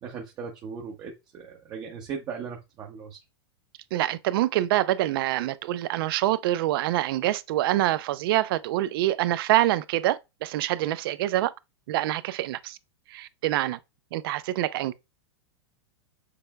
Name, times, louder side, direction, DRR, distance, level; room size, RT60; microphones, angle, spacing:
voice 1, 0.0-3.2, right 6 dB, 30° right, 0.8 m, -38 dB
voice 2, 3.9-11.5 11.9-12.8 13.1-13.8 14.1-14.9, right 15 dB, 55° right, 0.4 m, -25 dB
6.7 x 3.3 x 2.3 m
supercardioid pair, 145°, 14 cm